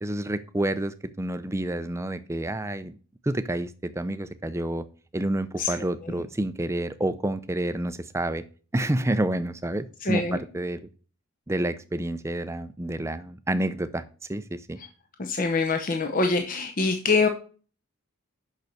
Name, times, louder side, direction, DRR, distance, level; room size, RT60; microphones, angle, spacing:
voice 1, 0.0-3.0 3.2-4.9 5.1-8.4 8.7-10.8 11.5-14.0 14.3-14.8, right 1 dB, 10° right, 12 dB, 0.5 m, -29 dB
voice 2, 10.0-10.4 15.2-17.3, left 3 dB, 35° left, 5 dB, 0.7 m, -24 dB
6.8 x 6.0 x 6.5 m, 0.40 s
head